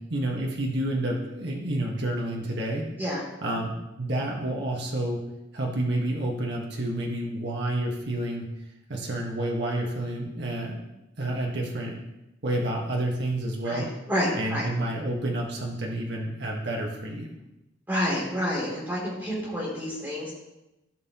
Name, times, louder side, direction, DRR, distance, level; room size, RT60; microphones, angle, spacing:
voice 1, 0.0-2.9 3.4-5.2 5.5-8.5 8.9-10.8 11.2-12.0 12.4-13.9 14.3-17.3, right 1 dB, 60° right, -1 dB, 1.5 m, -29 dB
voice 2, 13.6-14.7 17.9-20.3, equal, 10° right, -5 dB, 3.0 m, -29 dB
15.5 x 5.6 x 3.0 m, 0.95 s
head